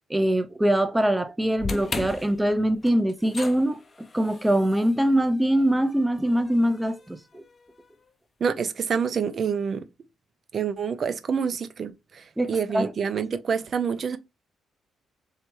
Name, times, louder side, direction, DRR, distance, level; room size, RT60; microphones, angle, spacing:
voice 1, 0.1-7.4 12.4-12.9, right 1 dB, 10° right, 0.6 m, -23 dB
sound 1, 1.6-7.9, left 3 dB, 30° left, 0.6 m, -38 dB
voice 2, 8.4-9.8 10.5-14.2, right 6 dB, 50° right, 0.6 m, -27 dB
3.4 x 2.8 x 4.5 m
cardioid pair, 90°, 0 cm